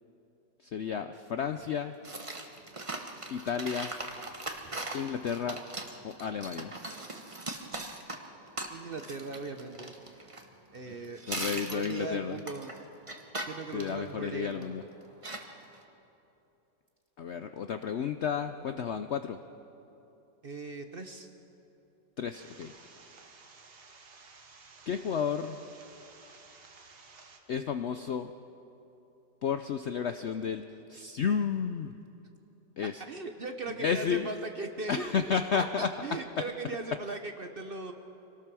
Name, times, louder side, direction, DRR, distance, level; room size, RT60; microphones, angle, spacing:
voice 1, 0.6-1.9 3.3-3.9 4.9-5.6 6.0-6.7 10.9-11.0 11.3-12.4 13.7-14.8 17.2-19.4 22.2-22.7 24.9-25.6 27.5-28.3 29.4-32.0 32.8-33.0 33.8-34.3 34.9-35.9, left 7 dB, 90° left, 8 dB, 0.6 m, -32 dB
sound 1, 2.0-10.9 11.2-14.7 15.2-15.8, right 2 dB, 20° right, 1.1 m, -40 dB
voice 2, 8.7-9.9 10.7-12.7 13.5-14.8 20.4-21.3 33.1-37.9, right 3 dB, 45° right, 6 dB, 0.8 m, -39 dB
sound 2, 22.3-27.4, right 4 dB, 60° right, 2.0 m, -54 dB
25.5 x 18.5 x 6.1 m, 2.9 s
omnidirectional pair, 1.9 m